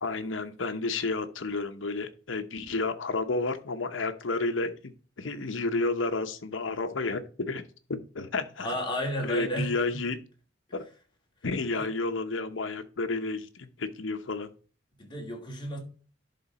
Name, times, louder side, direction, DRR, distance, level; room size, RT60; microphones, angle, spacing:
voice 1, 0.0-4.9 5.2-7.6 8.1-8.7 9.2-10.2 10.7-10.9 11.4-14.5, left 3 dB, 85° left, 0.9 m, -31 dB
voice 2, 8.6-9.7 11.8-11.9 15.0-15.8, equal, 25° left, 2.4 m, -32 dB
11.0 x 3.9 x 4.2 m
head